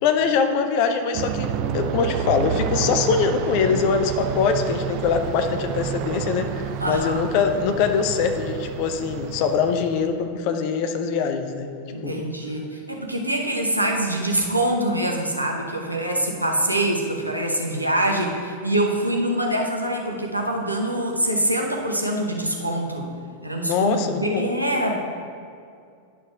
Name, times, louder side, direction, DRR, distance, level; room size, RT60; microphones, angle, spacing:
voice 1, 0.0-11.7 12.0-12.3 23.6-24.5, left 6 dB, 45° left, 7 dB, 0.6 m, -23 dB
Aircraft, 1.1-10.2, right 8 dB, 45° right, 0.3 m, -29 dB
voice 2, 6.8-7.2 11.9-23.1 23.4-24.9, right 1 dB, 90° right, 0 dB, 0.8 m, -24 dB
11.0 x 6.1 x 2.4 m, 2.3 s
figure-of-eight pair, 90°, 0 cm